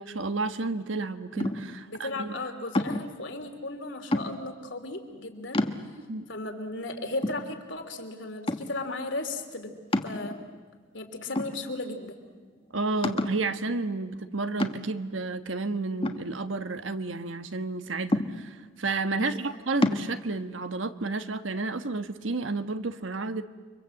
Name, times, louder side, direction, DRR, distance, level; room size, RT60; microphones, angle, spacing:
voice 1, 0.0-2.3 6.1-6.2 12.7-23.4, right 3 dB, 85° right, 9 dB, 1.4 m, -31 dB
sound 1, 1.4-1.8 2.7-3.2 4.1-4.6 5.1-5.2 5.5-6.2 6.7-6.8 7.2-8.0 8.5-8.9 9.9-10.7 11.4-12.0 12.3-12.4 13.0-13.5 14.6-15.1 16.0-16.9 18.1-18.7 19.8-20.1, left 1 dB, 30° left, 1.3 m, -29 dB
voice 2, 1.9-5.6 6.3-10.4 10.9-12.2 19.1-19.5, left 2 dB, 70° left, 4 dB, 3.2 m, -36 dB
30.0 x 24.5 x 7.9 m, 1.4 s
head